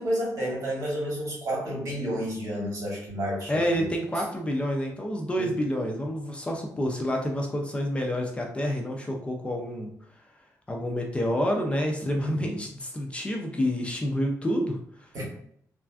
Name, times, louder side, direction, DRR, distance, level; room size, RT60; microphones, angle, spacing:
voice 1, 0.0-3.9 5.4-5.5 12.1-12.6 15.1-15.2, equal, 60° right, -4 dB, 1.4 m, -31 dB
voice 2, 3.5-9.9 10.7-14.8, equal, 20° left, 1 dB, 0.4 m, -28 dB
3.2 x 2.4 x 2.3 m, 0.68 s
cardioid pair, 125°, 6 cm